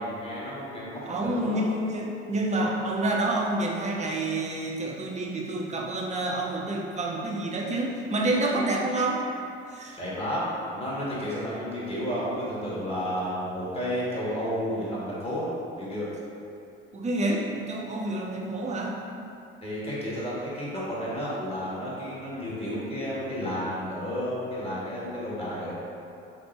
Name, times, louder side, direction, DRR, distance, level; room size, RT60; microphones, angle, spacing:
voice 1, 0.0-1.6 10.0-15.5 15.8-16.1 19.6-25.7, equal, 20° left, -8 dB, 1.4 m, -32 dB
voice 2, 1.1-9.2 9.7-10.0 16.9-19.0, right 2 dB, 25° right, -2 dB, 0.6 m, -28 dB
3.5 x 2.1 x 4.0 m, 2.6 s
hypercardioid pair, 70°, 29 cm